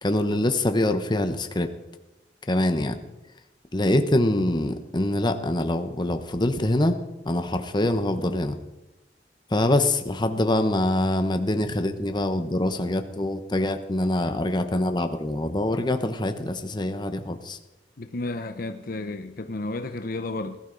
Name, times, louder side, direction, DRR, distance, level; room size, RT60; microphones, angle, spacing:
voice 1, 0.0-1.7 2.5-3.0 3.7-7.0 7.2-8.6 9.5-17.6, left 1 dB, 25° left, 1.0 m, -24 dB
voice 2, 18.0-20.6, left 2 dB, 55° left, 0.8 m, -32 dB
20.0 x 13.0 x 4.0 m
head